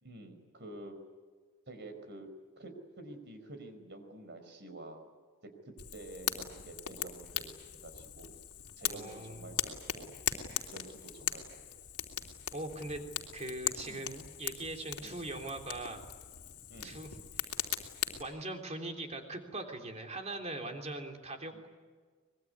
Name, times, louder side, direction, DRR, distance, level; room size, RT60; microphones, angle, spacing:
voice 1, 0.0-1.0 1.7-2.3 2.6-5.0 5.6-8.3 8.8-10.2 10.7-11.6 13.8-14.1 15.0-15.2 16.7-17.1 21.5-21.6, right 2 dB, 50° right, 7 dB, 4.8 m, -49 dB
Fire, 5.8-18.2, left 10 dB, 90° left, 3.2 m, -39 dB
voice 2, 8.9-9.5 12.5-13.0 13.3-16.0 16.8-17.1 17.4-17.5 18.2-21.7, right 2 dB, 30° right, 4 dB, 3.3 m, -41 dB
24.5 x 22.0 x 9.7 m, 1.5 s
head